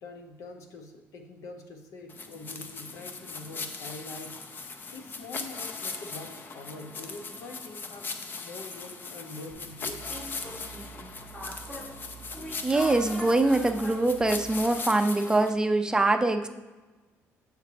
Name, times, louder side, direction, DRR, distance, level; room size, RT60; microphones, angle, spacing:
voice 1, 0.0-4.4 4.9-10.2, left 3 dB, 75° left, 5 dB, 0.9 m, -44 dB
sound 1, 2.1-15.5, left 4 dB, 40° left, 0.6 m, -39 dB
sound 2, 9.5-14.6, right 1 dB, 15° left, 1.6 m, -42 dB
voice 2, 12.6-16.5, right 2 dB, 15° right, 7 dB, 0.5 m, -24 dB
7.9 x 4.9 x 3.3 m, 1.2 s
cardioid pair, 100°, 5 cm